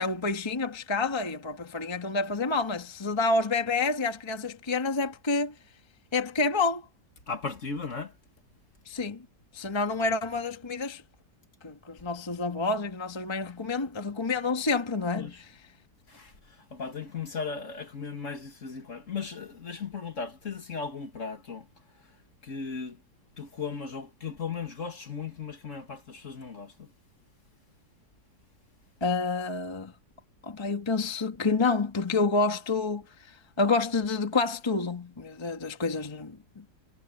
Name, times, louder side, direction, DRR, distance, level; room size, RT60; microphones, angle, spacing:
voice 1, 0.0-5.5 6.1-6.9 8.9-9.2 9.5-11.0 11.6-15.3 29.0-29.9 30.4-36.6, left 3 dB, 15° left, 1.4 m, -28 dB
voice 2, 7.3-8.1 15.2-15.4 16.1-21.7 22.4-23.0 23.4-26.9, left 5 dB, 45° left, 2.3 m, -37 dB
omnidirectional pair, 1.8 m